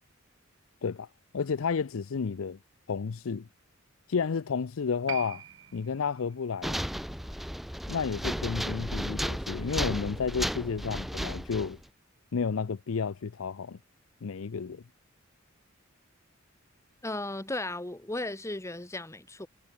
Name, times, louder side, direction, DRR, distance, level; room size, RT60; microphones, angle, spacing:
voice 1, 1.3-2.6 2.9-3.5 4.1-5.4 5.7-6.8 7.9-11.8 12.3-13.8 14.2-14.8, left 5 dB, 75° left, 0.5 m, -31 dB
Piano, 5.1-12.0 12.3-12.4, right 10 dB, 65° right, 3.8 m, -49 dB
sound 1, 6.6-11.8, equal, ahead, 0.3 m, -34 dB
voice 2, 17.0-19.5, left 2 dB, 15° left, 1.2 m, -35 dB
head